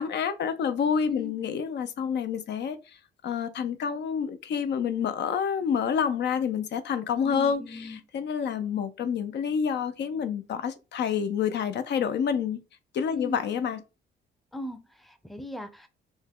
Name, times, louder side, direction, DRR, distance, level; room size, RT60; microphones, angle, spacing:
voice 1, 0.0-2.8 3.2-12.6 12.9-13.8, left 7 dB, 60° left, 0.5 m, -28 dB
voice 2, 7.2-8.0 13.1-13.4 14.5-15.9, left 1 dB, ahead, 0.6 m, -39 dB
4.4 x 2.1 x 3.6 m
cardioid pair, 90°, 20 cm